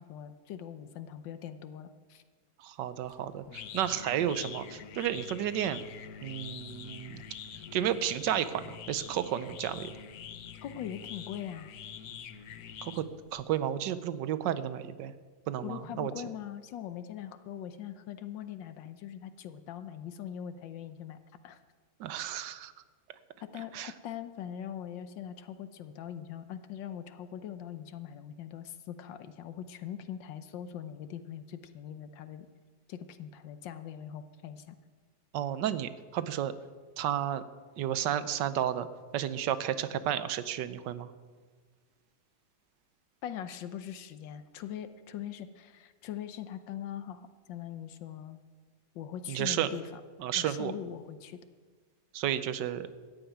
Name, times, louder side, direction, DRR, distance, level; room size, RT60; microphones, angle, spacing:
voice 1, 0.0-2.2 10.6-11.7 15.6-21.2 21.4-21.6 23.4-32.5 32.9-34.8 43.2-48.4 48.9-50.0 50.4-51.4, left 10 dB, 90° left, 10 dB, 1.5 m, -41 dB
voice 2, 2.6-5.8 6.2-7.2 7.5-9.9 12.8-13.1 13.3-15.1 15.5-16.1 22.0-22.7 23.7-23.9 35.3-36.5 37.0-37.4 37.8-38.9 39.1-41.1 49.3-49.7 50.2-50.7 52.1-52.9, right 10 dB, 75° right, 13 dB, 1.4 m, -32 dB
sound 1, 3.0-13.4, left 7 dB, 60° left, 1.2 m, -45 dB
14.0 x 7.9 x 9.3 m, 1.5 s
omnidirectional pair, 1.9 m